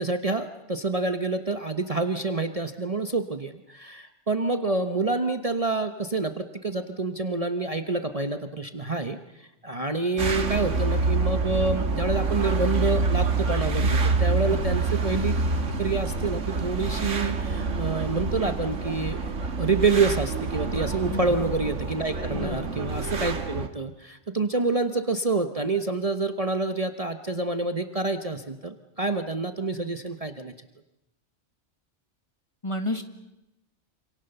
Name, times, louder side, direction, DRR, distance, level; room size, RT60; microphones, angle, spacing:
voice 1, 0.0-9.2 9.6-15.3 15.8-19.2 19.6-30.5, right 3 dB, 30° right, 8 dB, 1.2 m, -27 dB
sound 1, 10.2-23.7, right 3 dB, 85° right, 1.9 m, -27 dB
voice 2, 14.5-14.8 21.1-21.3 22.3-22.8 32.6-33.0, left 2 dB, 25° left, 7 dB, 1.8 m, -31 dB
27.5 x 27.0 x 6.9 m, 0.92 s
omnidirectional pair, 1.2 m